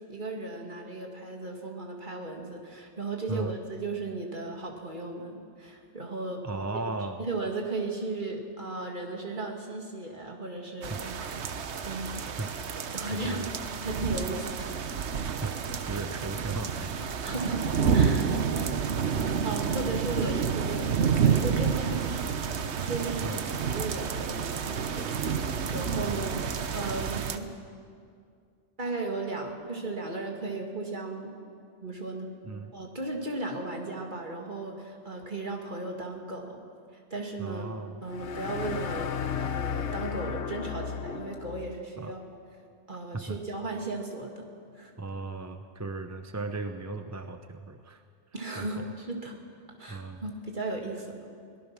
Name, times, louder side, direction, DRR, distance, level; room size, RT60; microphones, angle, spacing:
voice 1, 0.1-6.4 7.2-11.4 11.8-12.4 12.9-13.5 13.8-14.7 17.2-18.3 19.4-22.4 22.8-23.3 23.6-25.1 25.7-26.4 26.7-27.5 28.8-31.3 31.8-32.3 32.7-36.6 37.1-37.7 38.0-39.1 39.4-42.4 42.9-44.5 44.7-44.9 48.3-49.4 49.8-51.1, right 2 dB, 45° right, 1 dB, 2.5 m, -36 dB
voice 2, 6.4-7.2 10.9-11.0 12.4-12.5 13.1-13.5 15.3-17.1 19.1-19.4 23.2-23.4 26.1-26.3 32.4-32.7 37.4-38.0 42.0-42.1 43.1-43.4 45.0-48.0 48.6-48.9 49.9-50.2, right 3 dB, 15° right, 7 dB, 0.7 m, -36 dB
sound 1, 10.8-27.4, right 6 dB, 70° right, 1.2 m, -29 dB
sound 2, 38.1-41.8, left 7 dB, 80° left, 1.1 m, -34 dB
23.5 x 18.5 x 6.1 m, 2.3 s
omnidirectional pair, 1.2 m